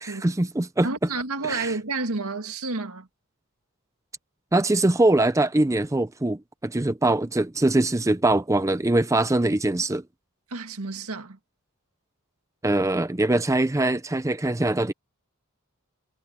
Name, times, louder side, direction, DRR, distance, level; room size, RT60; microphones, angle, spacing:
voice 1, 0.0-0.9 1.5-1.7 4.5-10.0 12.6-14.9, right 2 dB, 15° right, 0.5 m, -22 dB
voice 2, 0.8-3.1 10.5-11.4, right 3 dB, 85° right, 1.9 m, -30 dB
head